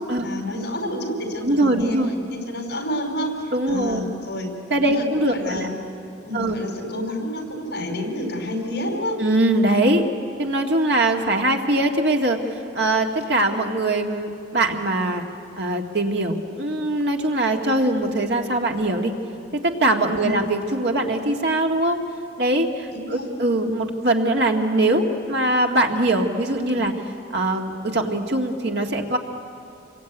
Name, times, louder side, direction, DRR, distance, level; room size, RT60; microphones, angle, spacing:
voice 1, 0.2-2.0 2.3-4.5 4.8-5.7 6.2-9.2 20.2-20.4 22.9-23.3, left 1 dB, 55° left, 3 dB, 5.0 m, -29 dB
voice 2, 1.4-2.1 3.5-4.0 4.7-5.7 6.3-6.6 9.2-10.0 10.4-12.4 12.7-15.2 15.6-19.1 19.5-22.0 22.4-27.0 27.3-29.2, right 1 dB, 60° right, 3 dB, 2.1 m, -22 dB
28.0 x 22.5 x 9.3 m, 2.8 s
head